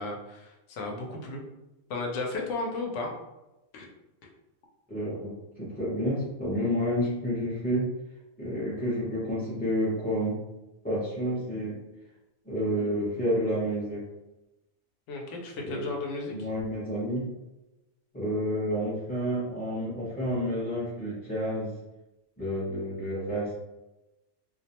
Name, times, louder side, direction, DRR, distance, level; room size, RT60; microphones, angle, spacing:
voice 1, 0.0-1.4 1.9-3.1 3.7-3.9 15.1-16.3, left 3 dB, 75° left, 0 dB, 0.9 m, -34 dB
voice 2, 4.9-7.9 8.4-10.4 10.8-11.8 12.5-14.0 15.6-15.9 16.3-17.2 18.1-21.7 22.4-23.5, equal, 10° left, -10 dB, 0.4 m, -30 dB
2.4 x 2.1 x 2.8 m, 0.99 s
omnidirectional pair, 1.3 m